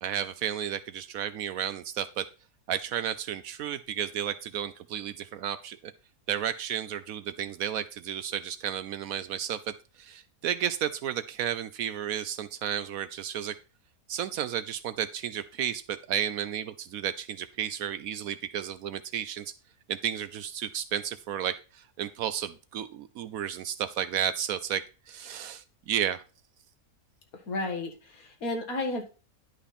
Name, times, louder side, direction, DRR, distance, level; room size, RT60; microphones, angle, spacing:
voice 1, 0.0-2.3 2.7-5.8 6.3-13.5 14.1-19.5 19.9-26.2, right 9 dB, 70° right, 12 dB, 0.9 m, -32 dB
voice 2, 27.5-29.1, left 2 dB, 60° left, 4 dB, 2.1 m, -32 dB
10.5 x 5.6 x 4.2 m, 0.35 s
omnidirectional pair, 1.7 m